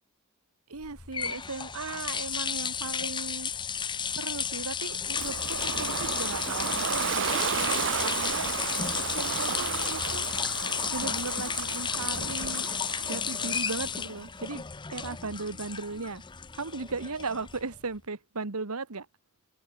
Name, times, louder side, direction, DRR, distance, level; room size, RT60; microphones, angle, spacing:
voice 1, 0.7-3.5 4.1-7.4 8.0-8.5 8.9-10.3 10.9-12.7 13.0-14.6 14.9-16.2 16.5-19.1, right 3 dB, 80° right, 1.5 m, -37 dB
sound 1, 0.8-17.8, left 7 dB, 20° left, 0.6 m, -33 dB
Ocean, 5.2-14.0, right 7 dB, 55° right, 0.9 m, -33 dB
open air
head